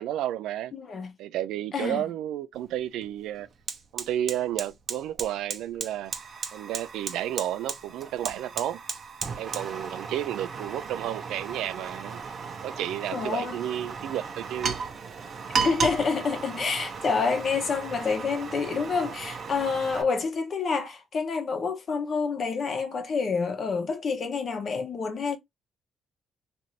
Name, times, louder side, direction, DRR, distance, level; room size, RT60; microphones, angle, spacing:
voice 1, 0.0-0.7 1.2-3.5 3.9-6.1 6.5-8.8 9.4-12.2 12.6-14.8, right 12 dB, 85° right, 0.3 m, -32 dB
voice 2, 0.7-1.1 1.7-2.1 13.1-13.6 15.6-25.4, left 5 dB, 50° left, 0.8 m, -28 dB
Fire, 2.5-2.7 3.0-20.0, right 5 dB, 50° right, 0.6 m, -35 dB
2.6 x 2.6 x 3.0 m
cardioid pair, 90°, 0 cm